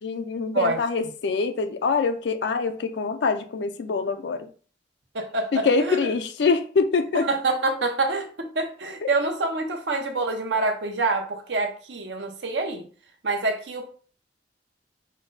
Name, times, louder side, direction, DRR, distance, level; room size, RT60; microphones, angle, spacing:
voice 1, 0.0-4.5 5.5-7.3 9.0-9.1, left 4 dB, 70° left, 0.4 m, -24 dB
voice 2, 5.1-6.0 7.1-12.9 13.2-13.9, right 3 dB, 80° right, 0.9 m, -26 dB
5.1 x 2.2 x 3.9 m
head